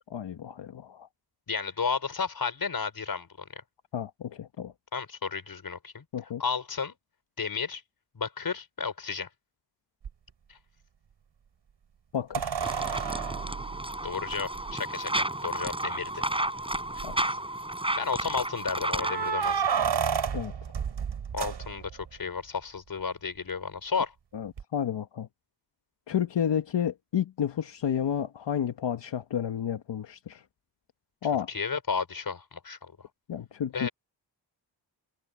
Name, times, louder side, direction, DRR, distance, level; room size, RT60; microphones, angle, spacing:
voice 1, 0.1-1.1 3.9-4.7 6.1-6.4 12.1-12.6 17.0-17.4 20.3-20.5 24.3-25.3 26.1-30.4 31.2-31.5 33.3-33.9, left 9 dB, 75° left, 1.5 m, -31 dB
voice 2, 1.5-3.6 4.9-6.0 6.4-6.9 7.4-7.8 8.1-9.3 14.0-16.2 18.0-19.7 21.3-24.1 31.5-32.9 33.7-33.9, left 5 dB, 50° left, 5.8 m, -32 dB
sound 1, 10.0-10.1 12.3-14.7 15.7-15.8 16.1-16.2 16.7-17.2 18.9-22.1 24.6-24.7, right 7 dB, 70° right, 4.8 m, -31 dB
sound 2, 12.6-19.3, right 1 dB, 10° right, 5.4 m, -32 dB
wide cardioid pair, 100°, 44 cm